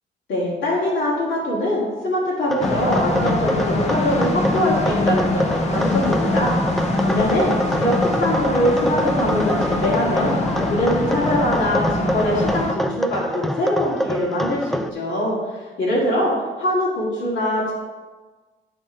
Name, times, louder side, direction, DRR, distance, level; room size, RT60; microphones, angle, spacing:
voice 1, 0.3-10.4 10.7-16.3 16.6-17.7, left 1 dB, 65° left, -7 dB, 2.3 m, -23 dB
sound 1, 2.5-14.9, equal, ahead, 0.3 m, -26 dB
sound 2, 2.6-12.7, left 2 dB, 35° left, 1.1 m, -23 dB
9.8 x 3.6 x 4.6 m, 1.3 s
cardioid pair, 90°, 20 cm